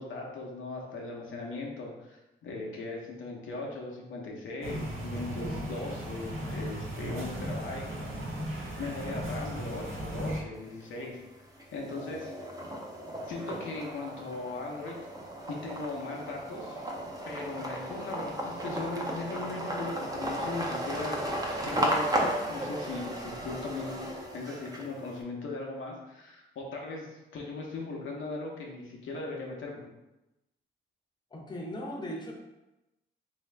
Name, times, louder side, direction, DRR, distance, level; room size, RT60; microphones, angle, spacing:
voice 1, 0.0-8.3 8.8-11.2 11.7-12.3 13.3-15.1 15.5-16.8 17.2-29.8, left 3 dB, 70° left, -1 dB, 0.8 m, -39 dB
sound 1, 4.6-10.4, right 1 dB, 75° right, 1.1 m, -36 dB
sound 2, 10.6-11.2 11.6-25.1, right 1 dB, 15° right, 0.7 m, -35 dB
voice 2, 31.3-32.3, equal, 20° left, -1 dB, 0.8 m, -38 dB
3.0 x 2.7 x 3.3 m, 0.97 s
cardioid pair, 75°, 21 cm